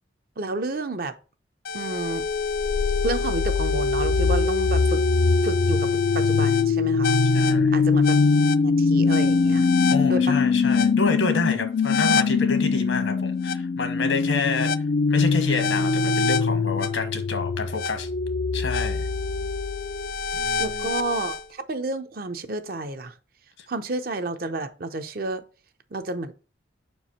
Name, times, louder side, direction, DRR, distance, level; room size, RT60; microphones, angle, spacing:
voice 1, 0.4-1.2 1.7-2.2 3.0-5.0 5.4-7.2 7.7-8.2 8.6-9.7 10.1-10.4 20.6-23.1 23.7-25.4 25.9-26.3, right 2 dB, 50° right, 0.6 m, -30 dB
sound 1, 1.6-21.4, left 4 dB, 50° left, 0.3 m, -22 dB
voice 2, 7.3-7.7 9.9-14.7 15.1-18.1 18.5-19.1 20.3-20.9, left 3 dB, 85° left, 1.4 m, -28 dB
5.8 x 4.6 x 4.1 m
head